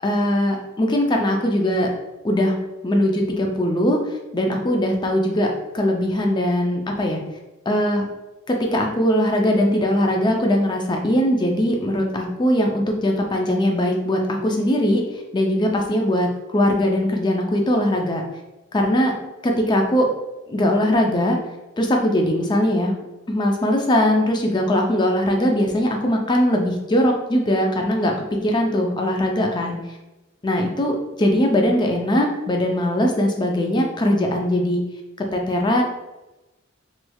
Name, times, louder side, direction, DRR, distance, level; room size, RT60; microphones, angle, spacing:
voice 1, 0.0-1.9 2.2-2.6 2.8-7.2 7.7-8.1 8.5-18.2 18.7-19.1 19.4-20.1 20.5-21.4 21.8-22.9 23.3-29.8 30.4-34.8 35.2-35.8, left 1 dB, 20° left, 2 dB, 0.4 m, -20 dB
3.1 x 3.1 x 2.3 m, 1.0 s
head